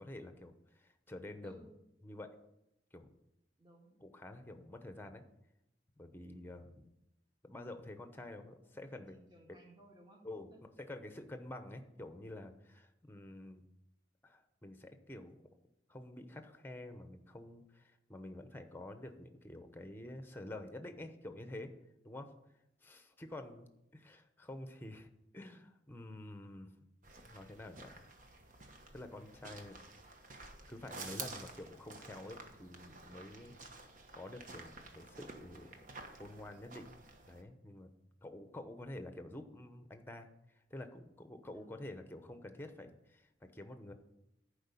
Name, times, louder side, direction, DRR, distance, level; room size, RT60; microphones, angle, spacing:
voice 1, 0.0-1.7 2.0-2.3 2.9-3.1 4.0-5.2 6.0-6.9 7.4-9.2 10.2-10.5 10.8-13.6 14.2-15.4 15.9-21.7 22.0-22.3 22.8-23.7 23.9-26.7 27.2-28.0 28.9-29.8 30.7-33.5 34.1-35.7 36.2-36.9 37.3-37.9 38.2-40.3 40.7-43.9, left 1 dB, 10° left, 8 dB, 0.9 m, -48 dB
voice 2, 3.6-4.0 8.4-10.2 10.5-10.6 41.5-41.7, right 1 dB, 25° right, 0 dB, 2.0 m, -60 dB
sound 1, 27.0-37.4, right 3 dB, 45° right, 1.3 m, -51 dB
11.0 x 4.9 x 8.3 m, 0.85 s
head